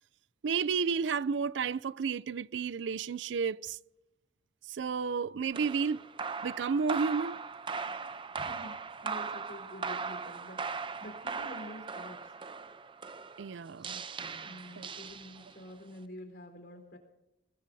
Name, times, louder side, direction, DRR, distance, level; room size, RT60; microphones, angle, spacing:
voice 1, 0.4-3.8 4.7-6.1 6.4-7.4 13.4-14.0 14.8-14.9, right 5 dB, 80° right, 0.4 m, -32 dB
sound 1, 5.5-15.7, right 5 dB, 25° right, 0.6 m, -39 dB
voice 2, 8.3-8.8 9.0-12.3 14.4-17.0, equal, 60° left, 4.2 m, -48 dB
21.5 x 21.5 x 2.7 m
head